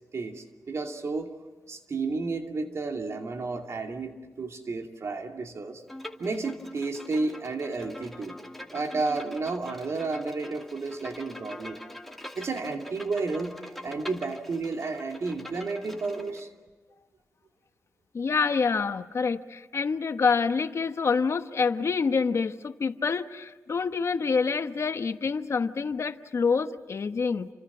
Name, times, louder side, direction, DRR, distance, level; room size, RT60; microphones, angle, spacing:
voice 1, 0.1-1.3 1.7-5.8 6.2-8.4 8.7-11.8 12.3-16.5, right 3 dB, 60° right, 3 dB, 2.5 m, -32 dB
Bowed string instrument, 5.9-16.4, left 1 dB, 5° left, 2.5 m, -44 dB
voice 2, 18.1-27.5, left 5 dB, 60° left, 9 dB, 1.1 m, -27 dB
29.0 x 26.0 x 6.2 m, 1.3 s
wide cardioid pair, 90°, 5 cm